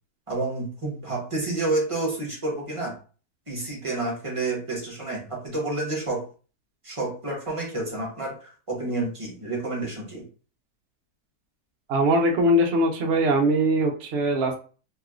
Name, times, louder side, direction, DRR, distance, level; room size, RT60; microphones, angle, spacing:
voice 1, 0.3-2.9 3.5-6.2 6.8-10.2, right 2 dB, 25° right, -3 dB, 0.8 m, -29 dB
voice 2, 11.9-14.6, right 1 dB, 60° right, 2 dB, 0.7 m, -21 dB
3.0 x 2.9 x 2.4 m, 0.38 s
omnidirectional pair, 1.8 m